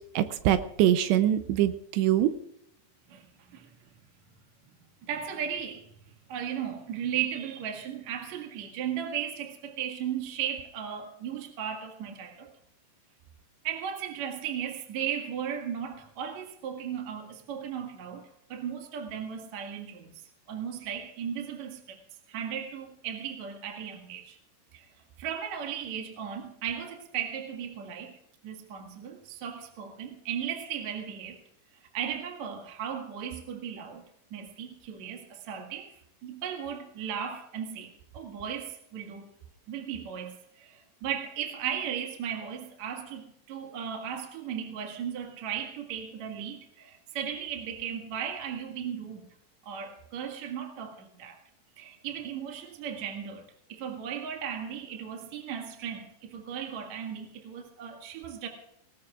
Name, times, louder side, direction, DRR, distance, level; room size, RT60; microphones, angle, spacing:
voice 1, 0.2-2.3, right 12 dB, 85° right, 11 dB, 2.9 m, -24 dB
voice 2, 5.1-5.8 6.3-12.5 13.6-18.2 18.5-20.1 20.5-22.0 22.3-24.4 24.7-24.8 25.2-28.1 28.4-31.4 31.9-34.0 34.3-35.9 36.2-39.3 39.7-40.4 40.6-40.7 41.0-49.2 49.7-51.4 51.8-53.4 53.7-58.5, right 8 dB, 50° right, 3 dB, 2.5 m, -36 dB
20.0 x 19.5 x 2.4 m, 0.73 s
omnidirectional pair, 5.0 m